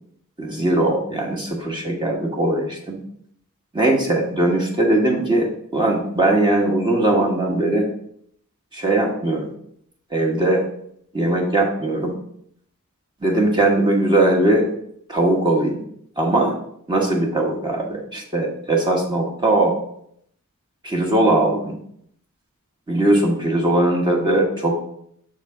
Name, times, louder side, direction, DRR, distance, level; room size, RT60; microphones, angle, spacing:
voice 1, 0.4-3.0 3.7-7.9 8.7-9.5 10.1-10.6 11.1-12.2 13.2-14.7 15.1-15.8 16.2-16.6 16.9-19.7 20.8-21.8 22.9-24.7, right 1 dB, 20° right, 0 dB, 1.3 m, -20 dB
7.1 x 3.8 x 4.8 m, 0.68 s
head